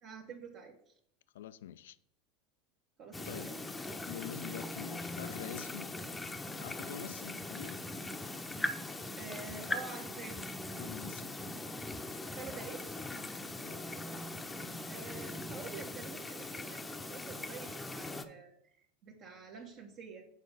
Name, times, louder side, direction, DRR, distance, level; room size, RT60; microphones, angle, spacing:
voice 1, 0.0-0.9 3.0-3.6 9.2-10.4 12.3-13.0 14.9-20.2, right 4 dB, 50° right, 1.2 m, -48 dB
voice 2, 1.3-2.0 3.2-3.5 4.1-6.0 6.6-7.9 10.8-11.3 13.6-14.1, left 11 dB, 80° left, 0.4 m, -46 dB
sound 1, 3.1-18.3, left 2 dB, 15° left, 0.7 m, -41 dB
6.5 x 4.4 x 5.4 m
hypercardioid pair, 90°, 0 cm